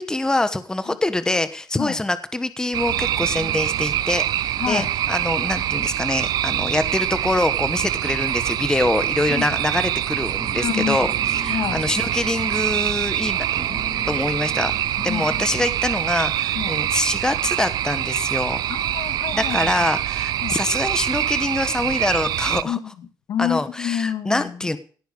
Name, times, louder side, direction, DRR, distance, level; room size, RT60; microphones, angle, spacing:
voice 1, 0.0-13.7 14.1-14.7 15.0-18.6 19.3-22.8 23.4-24.8, left 2 dB, 10° left, 12 dB, 1.3 m, -25 dB
sound 1, 2.7-22.6, right 12 dB, 85° right, 0.7 m, -24 dB
voice 2, 4.6-4.9 9.3-9.5 10.5-11.1 11.5-11.8 15.1-15.3 16.5-16.8 18.7-19.7 20.4-20.6 22.6-24.5, left 9 dB, 75° left, 10 dB, 2.2 m, -28 dB
sound 2, 10.5-15.9, left 4 dB, 30° left, 2.5 m, -41 dB
17.5 x 9.2 x 6.6 m, 0.42 s
cardioid pair, 135°, 7 cm